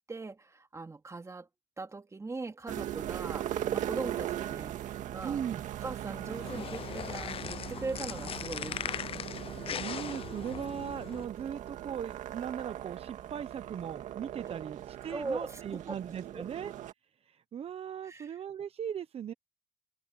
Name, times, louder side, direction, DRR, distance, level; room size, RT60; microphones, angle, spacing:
voice 1, 0.1-1.5 1.8-4.8 5.1-5.4 5.8-9.6 14.5-14.6 15.1-16.0 16.3-16.5 18.0-18.3, right 3 dB, 20° right, 2.6 m, -40 dB
sound 1, 2.7-16.9, right 12 dB, 70° right, 2.0 m, -39 dB
voice 2, 5.2-5.6 8.8-9.0 9.7-16.7 17.2-19.3, right 8 dB, 50° right, 1.0 m, -39 dB
sound 2, 6.2-11.2, left 9 dB, 45° left, 0.6 m, -39 dB
open air
supercardioid pair, 80°, 13 cm